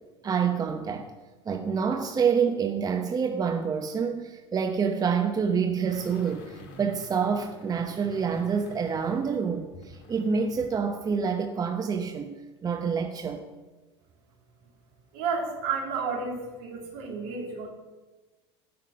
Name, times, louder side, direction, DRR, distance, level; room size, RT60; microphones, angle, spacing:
voice 1, 0.2-1.1 1.5-12.3 12.6-13.4, right 6 dB, 25° right, 5 dB, 0.9 m, -27 dB
sound 1, 5.9-10.8 11.1-11.2, left 2 dB, 55° left, 2.1 m, -48 dB
voice 2, 15.1-17.7, right 5 dB, 65° right, -1 dB, 3.0 m, -31 dB
11.0 x 5.9 x 6.7 m, 1.2 s
hypercardioid pair, 75°, 14 cm